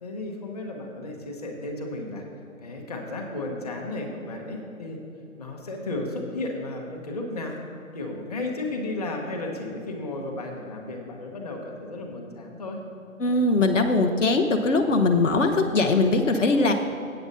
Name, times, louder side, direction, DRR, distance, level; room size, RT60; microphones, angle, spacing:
voice 1, 0.0-2.2 2.6-5.0 5.4-7.6 7.9-12.8 16.5-16.7, left 2 dB, 30° left, 1 dB, 0.9 m, -34 dB
voice 2, 13.2-16.7, left 3 dB, 60° left, 5 dB, 0.8 m, -21 dB
8.3 x 7.9 x 5.4 m, 2.8 s
hypercardioid pair, 170°, 42 cm